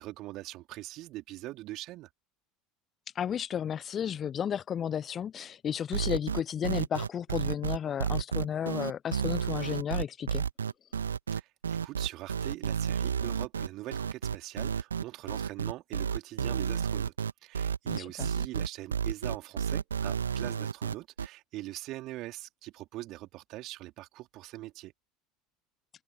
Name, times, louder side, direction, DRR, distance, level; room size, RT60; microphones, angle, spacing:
voice 1, 0.0-2.1 11.3-17.1 17.4-24.9, right 17 dB, 50° right, 3.3 m, -42 dB
voice 2, 3.1-10.4 17.9-18.3, left 8 dB, 35° left, 1.2 m, -33 dB
sound 1, 5.9-21.3, right 7 dB, 75° right, 2.0 m, -31 dB
open air
figure-of-eight pair, 70°, 0 cm